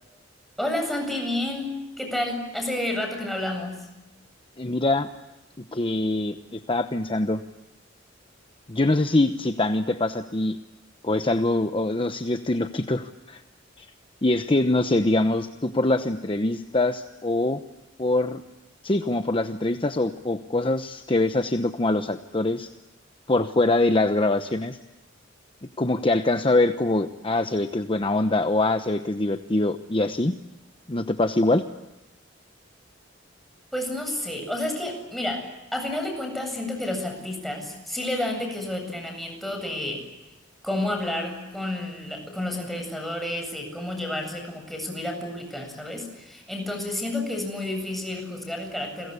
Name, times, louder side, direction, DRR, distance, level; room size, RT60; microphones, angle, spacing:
voice 1, 0.6-3.8 33.7-40.0 40.6-49.1, left 1 dB, ahead, 3 dB, 8.0 m, -30 dB
voice 2, 4.6-5.1 5.7-7.4 8.7-10.6 11.0-13.4 13.8-13.9 14.2-17.6 18.0-18.4 18.8-22.7 23.3-24.8 25.8-30.3 30.9-31.6, left 2 dB, 30° left, 8 dB, 1.0 m, -24 dB
30.0 x 22.5 x 8.4 m, 1.0 s
head